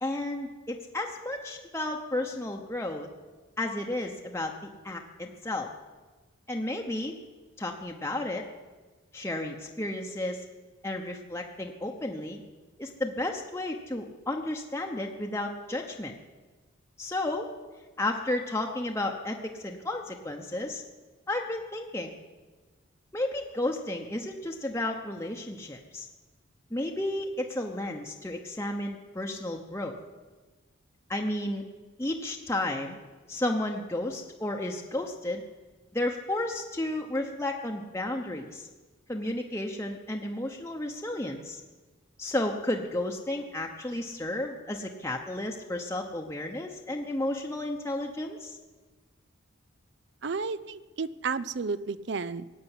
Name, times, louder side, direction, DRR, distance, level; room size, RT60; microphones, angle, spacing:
voice 1, 0.0-3.1 3.6-5.7 6.5-7.2 7.6-8.5 9.1-10.4 10.8-12.4 12.8-16.2 17.0-17.5 18.0-20.8 21.3-22.1 23.1-26.1 26.7-30.0 31.1-31.6 32.0-33.0 33.3-35.4 35.9-38.7 39.1-41.6 42.2-48.6, left 1 dB, 15° left, 1 dB, 0.9 m, -32 dB
voice 2, 50.2-52.5, right 4 dB, 55° right, 17 dB, 0.5 m, -32 dB
17.5 x 8.4 x 9.9 m, 1.3 s
head